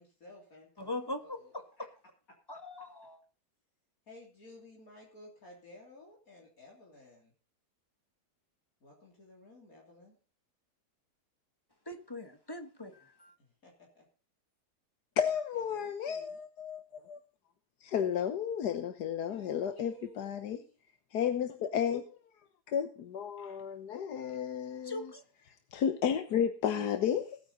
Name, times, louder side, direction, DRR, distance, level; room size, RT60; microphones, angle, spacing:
voice 1, 0.0-1.5 1.8-1.9 4.1-7.3 8.8-10.2 13.4-14.1 15.5-16.4 19.3-20.7 26.6-27.2, left 1 dB, 60° left, -2 dB, 3.7 m, -55 dB
voice 2, 0.8-1.6 2.5-3.2 11.9-13.3 24.8-25.2, left 2 dB, 15° left, 7 dB, 1.4 m, -41 dB
voice 3, 15.2-17.2 17.8-20.6 21.1-22.0 22.7-25.0 25.7-27.4, left 8 dB, 80° left, 9 dB, 1.6 m, -32 dB
20.0 x 9.1 x 4.1 m, 0.35 s
omnidirectional pair, 1.7 m